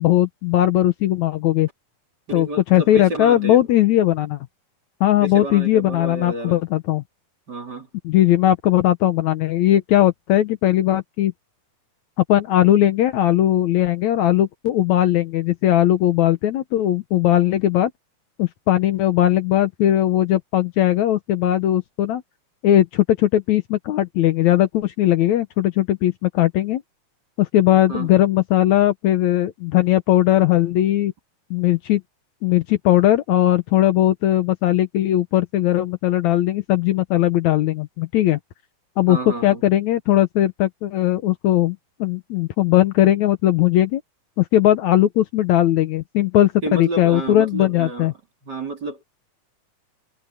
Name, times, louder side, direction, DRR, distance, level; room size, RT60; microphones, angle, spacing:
voice 1, 0.0-1.7 2.3-4.4 5.0-7.0 8.1-11.3 12.3-17.9 18.4-22.2 22.6-26.8 27.4-31.1 31.5-32.0 32.4-38.4 39.0-39.2 39.4-44.0 44.4-48.1, left 13 dB, 70° left, 2.1 m, -18 dB
voice 2, 2.3-3.7 5.2-6.6 7.5-7.9 27.9-28.1 39.1-39.6 46.6-48.1 48.4-49.0, right 2 dB, 30° right, 3.7 m, -30 dB
omnidirectional pair, 3.7 m